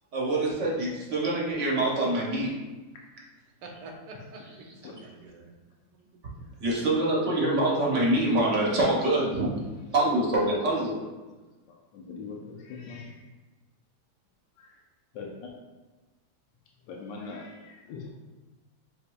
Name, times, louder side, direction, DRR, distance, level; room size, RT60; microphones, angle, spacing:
voice 1, 0.1-2.5 4.6-4.7 6.6-9.5 9.9-11.2, right 1 dB, 50° right, -4 dB, 1.0 m, -25 dB
voice 2, 3.6-5.5 5.9-6.1, right 2 dB, 70° right, 2 dB, 1.2 m, -46 dB
voice 3, 11.9-13.1 15.2-15.5 16.9-18.1, left 4 dB, 75° left, -1 dB, 1.2 m, -41 dB
7.8 x 2.6 x 2.2 m, 1.2 s
omnidirectional pair, 2.1 m